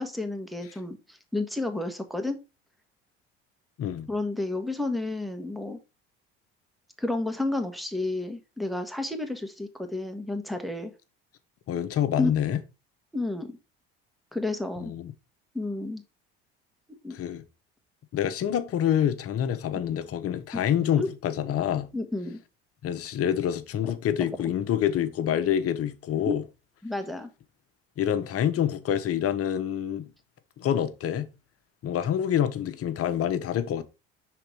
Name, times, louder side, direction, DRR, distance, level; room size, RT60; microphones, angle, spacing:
voice 1, 0.0-2.4 4.1-5.8 7.0-10.9 12.2-12.3 13.1-13.6 14.3-14.9 15.5-16.0 16.9-17.2 21.0-21.1 21.9-22.4 23.8-23.9 26.2-26.3 26.8-27.3, left 2 dB, ahead, 1.4 m, -31 dB
voice 2, 11.7-12.6 14.8-15.1 17.1-17.4 18.1-21.9 22.8-26.4 28.0-30.0 30.6-31.3 31.8-33.8, left 10 dB, 50° left, 1.0 m, -27 dB
5.8 x 3.9 x 4.5 m
hypercardioid pair, 70°, 30 cm